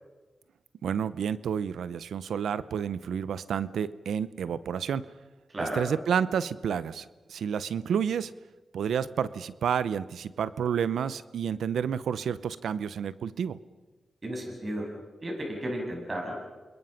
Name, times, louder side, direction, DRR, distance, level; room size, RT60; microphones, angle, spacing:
voice 1, 0.8-5.0 5.8-8.3 8.7-13.6, right 7 dB, 90° right, 16 dB, 0.7 m, -30 dB
voice 2, 5.5-5.8 14.2-14.9 15.2-16.4, right 1 dB, 40° right, 1 dB, 7.4 m, -33 dB
29.0 x 21.5 x 5.8 m, 1.3 s
cardioid pair, 60°, 0 cm